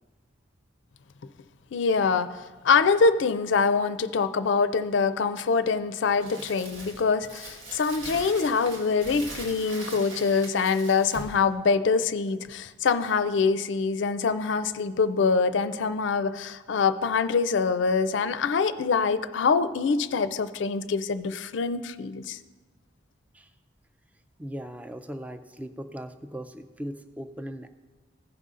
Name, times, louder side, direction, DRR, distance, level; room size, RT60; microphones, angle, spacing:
voice 1, 1.7-22.4, left 5 dB, 65° left, 13 dB, 0.4 m, -24 dB
Crumpling crinkling, 6.2-11.4, right 1 dB, 80° right, 1.7 m, -41 dB
voice 2, 24.4-27.7, equal, 5° right, 8 dB, 0.4 m, -38 dB
15.5 x 5.4 x 3.7 m, 1.2 s
head